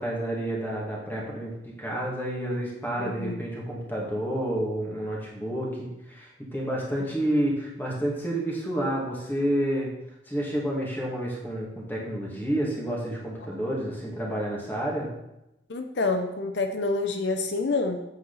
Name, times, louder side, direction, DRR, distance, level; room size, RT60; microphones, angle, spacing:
voice 1, 0.0-9.9 10.3-15.1, right 1 dB, 10° left, -3 dB, 2.1 m, -29 dB
voice 2, 3.0-3.4 15.7-18.0, left 3 dB, 75° left, 6 dB, 0.7 m, -27 dB
8.3 x 8.0 x 4.1 m, 0.90 s
head